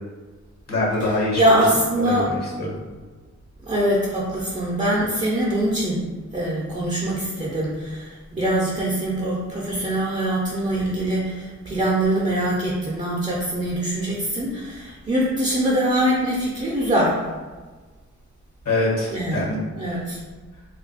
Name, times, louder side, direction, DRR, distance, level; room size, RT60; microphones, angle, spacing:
voice 1, 0.7-1.6 2.0-2.7 18.6-19.6, left 2 dB, 60° left, -4 dB, 1.4 m, -24 dB
voice 2, 1.4-2.3 3.7-6.0 6.3-17.2 19.1-19.5 19.8-20.2, right 1 dB, 25° right, -5 dB, 0.7 m, -23 dB
2.5 x 2.2 x 4.0 m, 1.3 s
cardioid pair, 60°, 30 cm